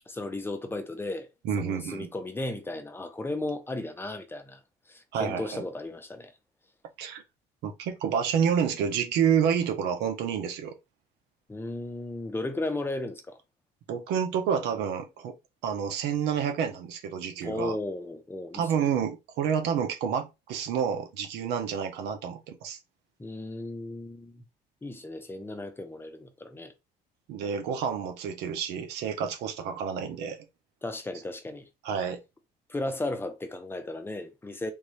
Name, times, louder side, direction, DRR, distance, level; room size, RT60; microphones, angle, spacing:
voice 1, 0.1-1.3 1.6-4.6 4.9-6.3 11.5-13.4 17.4-18.9 23.2-24.4 24.8-26.7 30.8-31.7 32.7-34.7, left 2 dB, 15° left, 0.8 m, -35 dB
voice 2, 1.4-2.1 5.1-5.6 7.0-7.2 7.6-10.7 13.9-15.3 15.6-17.8 18.5-22.8 27.3-30.4 31.8-32.2, right 7 dB, 85° right, 0.9 m, -29 dB
3.6 x 2.6 x 3.2 m
cardioid pair, 110°, 17 cm